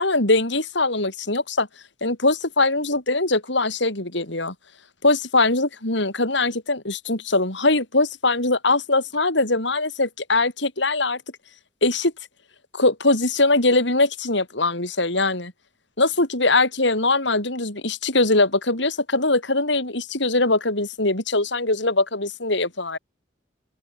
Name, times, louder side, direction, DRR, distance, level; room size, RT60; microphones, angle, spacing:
voice 1, 0.0-1.7 2.0-4.5 5.0-11.2 11.8-12.1 12.7-15.5 16.0-23.0, left 2 dB, 70° left, 6.8 m, -21 dB
open air
head